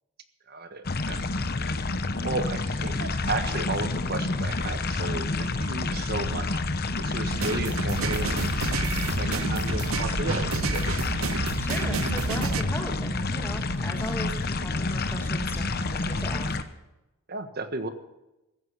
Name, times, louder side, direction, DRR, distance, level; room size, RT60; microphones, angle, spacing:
voice 1, 0.5-1.3 2.2-6.6 7.0-11.0 17.3-17.9, right 2 dB, 45° right, 8 dB, 1.5 m, -34 dB
sound 1, 0.8-16.6, left 3 dB, 45° left, 1.0 m, -29 dB
sound 2, 2.7-3.5 3.8-4.2 4.5-11.0, right 1 dB, 90° right, 7.0 m, -48 dB
sound 3, 7.3-12.6, right 4 dB, 65° right, 0.8 m, -30 dB
voice 2, 11.6-16.5, equal, 10° left, 3 dB, 2.4 m, -37 dB
15.5 x 14.5 x 5.7 m, 0.98 s
head